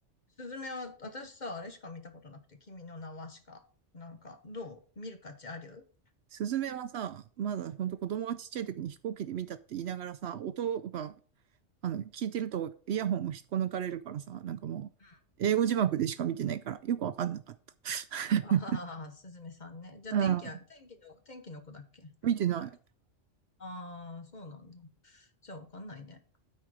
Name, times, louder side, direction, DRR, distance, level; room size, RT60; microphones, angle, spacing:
voice 1, 0.4-3.6 3.9-5.9 11.0-11.1 15.0-15.2 18.4-22.1 23.6-26.2, left 2 dB, 40° left, 1.3 m, -44 dB
voice 2, 6.3-11.1 11.8-14.9 15.4-17.5 17.8-18.6 20.1-20.4 22.2-22.7, right 9 dB, 65° right, 0.8 m, -32 dB
12.5 x 4.4 x 4.9 m
omnidirectional pair, 1.2 m